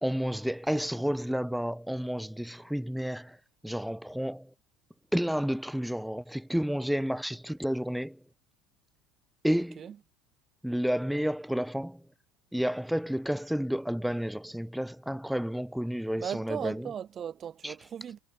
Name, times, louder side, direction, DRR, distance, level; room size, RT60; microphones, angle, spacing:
voice 1, 0.0-3.4 3.6-4.5 5.1-8.2 9.4-9.9 10.6-12.0 12.5-16.9 17.6-17.8, equal, ahead, 1.4 m, -31 dB
voice 2, 16.2-18.2, right 8 dB, 30° right, 1.8 m, -37 dB
cardioid pair, 155°, 0 cm